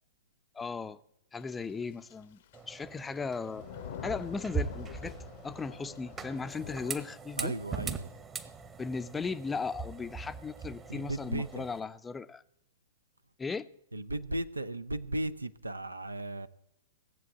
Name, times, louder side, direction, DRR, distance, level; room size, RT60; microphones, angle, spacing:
voice 1, 0.5-1.0 1.3-2.4 2.7-3.7 4.0-5.2 5.4-7.5 8.8-12.4 13.4-13.7, left 4 dB, 10° left, 0.5 m, -37 dB
sound 1, 1.4-1.8 2.1-2.6 2.9-7.0, left 10 dB, 50° left, 0.8 m, -45 dB
sound 2, 2.5-11.8, right 5 dB, 15° right, 0.9 m, -41 dB
voice 2, 7.4-8.1 10.9-11.6 13.9-16.5, right 1 dB, 85° right, 0.6 m, -35 dB
17.0 x 7.6 x 8.3 m
figure-of-eight pair, 105°, 0 cm